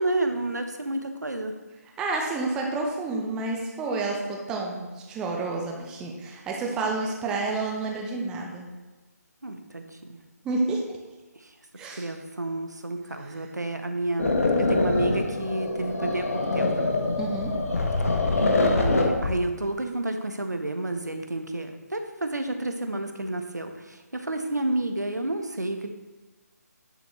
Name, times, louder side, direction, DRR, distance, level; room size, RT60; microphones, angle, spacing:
voice 1, 0.0-1.6 9.4-10.2 11.4-11.5 11.9-16.9 18.4-25.9, right 2 dB, 80° right, 6 dB, 1.0 m, -30 dB
voice 2, 2.0-8.7 10.4-10.8 11.8-12.1 17.2-17.5, right 3 dB, 10° right, -1 dB, 0.7 m, -29 dB
sound 1, 14.2-19.4, left 3 dB, 55° left, 1.2 m, -24 dB
10.0 x 6.2 x 3.1 m, 1.2 s
figure-of-eight pair, 150°, 9 cm